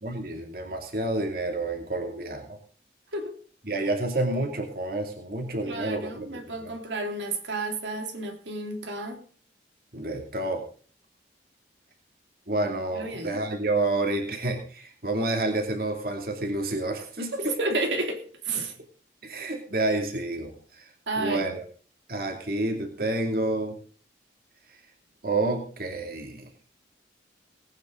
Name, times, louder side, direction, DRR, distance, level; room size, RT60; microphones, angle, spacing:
voice 1, 0.0-2.6 3.6-6.7 9.9-10.6 12.5-17.5 18.6-18.7 19.2-20.9 21.2-21.6 22.1-23.8 25.2-26.5, right 2 dB, 55° right, 2.6 m, -29 dB
voice 2, 5.6-9.2 12.9-13.4 17.3-18.7 21.1-21.4, right 2 dB, 90° right, 3.1 m, -31 dB
19.5 x 9.4 x 3.8 m
head